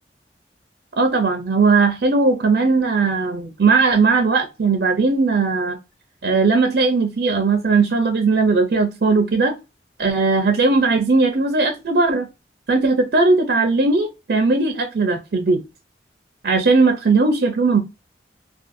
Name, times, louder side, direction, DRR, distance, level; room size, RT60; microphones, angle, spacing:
voice 1, 1.0-5.8 6.2-9.5 10.0-12.3 12.7-15.6 16.4-17.8, right 3 dB, 60° right, 0.5 m, -18 dB
2.6 x 2.3 x 2.4 m
head